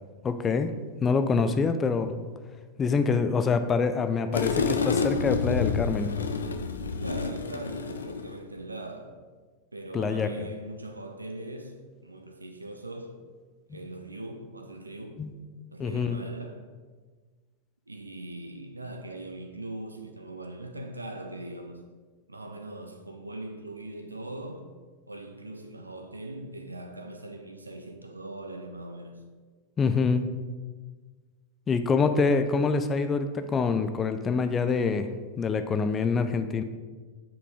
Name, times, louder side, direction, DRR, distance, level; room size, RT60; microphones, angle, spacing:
voice 1, 0.2-0.7 1.0-2.1 2.8-6.1 9.9-10.3 13.7-13.8 15.2-15.3 15.8-16.2 29.8-30.2 31.7-35.1 35.4-36.6, left 5 dB, 20° left, 9 dB, 0.5 m, -25 dB
sound 1, 4.3-8.4, left 5 dB, 70° left, 0.5 m, -29 dB
voice 2, 7.0-9.2 9.7-13.2 13.7-15.2 15.7-16.7 17.9-21.8 22.3-24.7 25.1-29.2, right 1 dB, 80° right, 6 dB, 0.6 m, -40 dB
7.5 x 6.8 x 3.7 m, 1.4 s
figure-of-eight pair, 90°, 0 cm